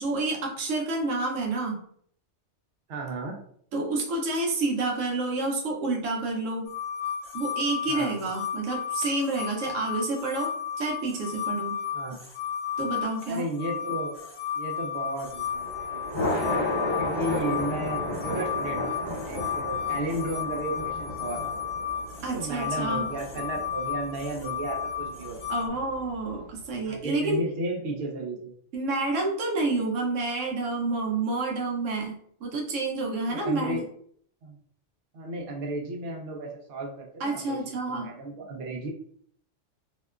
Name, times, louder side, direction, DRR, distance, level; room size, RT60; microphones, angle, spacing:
voice 1, 0.0-1.8 3.7-6.7 7.3-11.8 12.8-13.5 22.2-23.0 25.5-27.4 28.7-33.8 37.2-38.1, right 2 dB, 90° right, 0 dB, 1.0 m, -29 dB
voice 2, 2.9-3.4 7.9-8.1 11.9-12.2 13.3-14.2 14.6-16.2 17.0-21.9 22.3-25.4 25.6-25.8 26.9-28.5 33.3-33.9 34.4-34.6 35.1-38.9, right 2 dB, 60° right, 0 dB, 0.8 m, -34 dB
sound 1, 6.7-25.7, left 8 dB, 65° left, 0.8 m, -33 dB
Thunder, 15.3-26.6, left 1 dB, 25° left, 0.8 m, -34 dB
2.8 x 2.1 x 2.3 m, 0.62 s
omnidirectional pair, 1.2 m